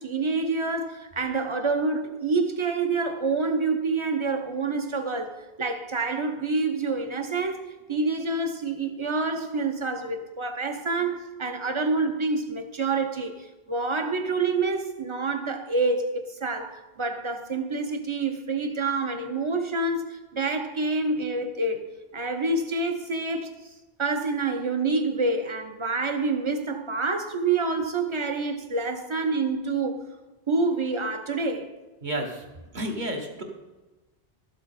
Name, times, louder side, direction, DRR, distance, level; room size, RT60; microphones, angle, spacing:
voice 1, 0.0-23.7 24.0-30.0 30.5-31.7, right 3 dB, 30° right, 0.8 m, -27 dB
voice 2, 32.0-32.4 32.7-33.4, right 1 dB, 45° right, 1.5 m, -31 dB
12.5 x 7.3 x 4.2 m
omnidirectional pair, 1.1 m